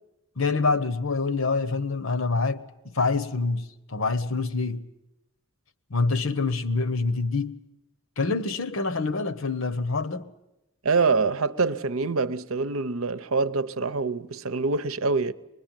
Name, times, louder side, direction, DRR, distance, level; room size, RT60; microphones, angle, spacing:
voice 1, 0.4-4.9 5.9-7.5 8.2-10.3, left 3 dB, 65° left, 1.1 m, -26 dB
voice 2, 10.8-15.3, right 4 dB, 70° right, 0.8 m, -25 dB
23.5 x 21.5 x 9.1 m
head